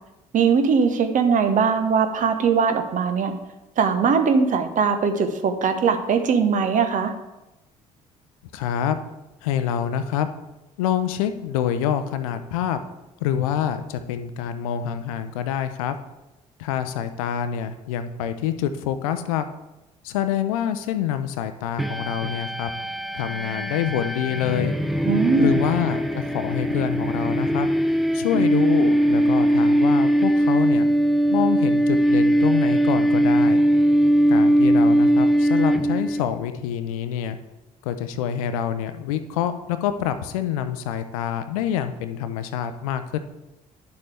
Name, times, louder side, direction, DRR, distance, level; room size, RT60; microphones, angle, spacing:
voice 1, 0.3-3.3 3.8-7.1 25.1-25.6, right 5 dB, 45° right, 8 dB, 1.0 m, -20 dB
voice 2, 8.5-9.0 9.4-10.3 10.8-12.8 13.2-16.0 16.6-19.4 20.0-22.7 23.1-24.7 25.4-27.7 28.1-30.9 31.3-33.6 34.3-37.4 37.8-43.2, left 9 dB, 70° left, 10 dB, 0.6 m, -26 dB
sound 1, 21.8-36.3, right 1 dB, ahead, 0.7 m, -20 dB
10.5 x 7.0 x 3.4 m, 0.99 s
figure-of-eight pair, 50°, 19 cm